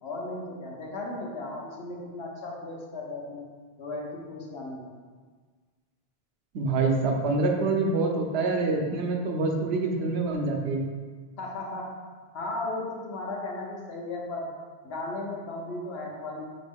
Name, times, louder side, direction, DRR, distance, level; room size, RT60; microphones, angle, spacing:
voice 1, 0.0-3.5 3.8-4.9 11.4-11.9 12.3-14.5 14.8-16.5, left 2 dB, 80° left, -2 dB, 1.1 m, -35 dB
voice 2, 6.5-10.9, right 3 dB, 85° right, 2 dB, 0.9 m, -26 dB
5.1 x 2.9 x 3.4 m, 1.5 s
omnidirectional pair, 1.0 m